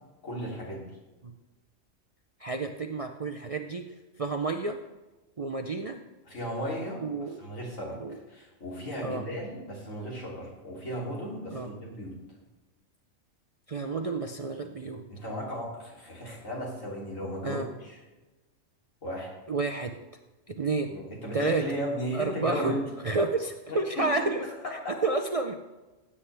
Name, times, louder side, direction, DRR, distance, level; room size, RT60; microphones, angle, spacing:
voice 1, 0.2-0.9 6.3-7.1 7.4-8.0 8.3-12.2 15.1-18.0 19.0-19.3 20.9-22.8 23.7-24.5, equal, 85° left, -4 dB, 3.6 m, -35 dB
voice 2, 2.4-3.8 4.2-4.8 5.4-6.0 7.0-7.4 8.0-8.2 9.0-9.3 11.5-11.7 13.7-15.0 17.4-17.7 19.5-19.9 20.5-20.9 21.3-21.6 22.1-22.7 23.0-24.4 24.7-25.5, right 3 dB, 45° right, 5 dB, 0.4 m, -30 dB
15.5 x 8.5 x 3.4 m, 1.1 s
omnidirectional pair, 1.3 m